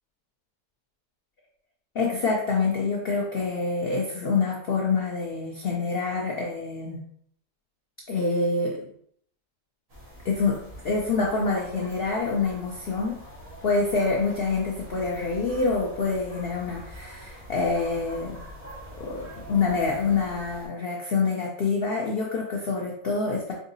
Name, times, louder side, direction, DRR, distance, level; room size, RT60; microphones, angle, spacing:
voice 1, 1.9-7.0 8.1-8.8 10.2-13.2 13.6-18.4 19.0-23.5, left 4 dB, 75° left, -1 dB, 0.5 m, -26 dB
sound 1, 9.9-20.7, equal, 55° right, 1.8 m, -44 dB
4.8 x 2.7 x 2.6 m, 0.66 s
omnidirectional pair, 1.7 m